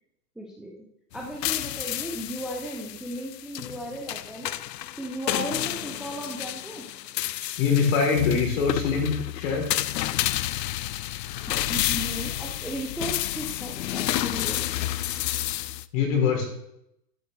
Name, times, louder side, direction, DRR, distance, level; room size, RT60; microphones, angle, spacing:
voice 1, 0.4-0.7 1.1-4.5 5.0-6.9 11.5-14.7, right 1 dB, ahead, -1 dB, 0.6 m, -36 dB
sound 1, 1.1-15.9, left 14 dB, 80° left, 0.6 m, -30 dB
voice 2, 7.6-9.1 9.3-9.6 15.9-16.4, left 6 dB, 50° left, 1 dB, 3.9 m, -23 dB
12.5 x 9.2 x 3.4 m, 0.79 s
hypercardioid pair, 135°, 49 cm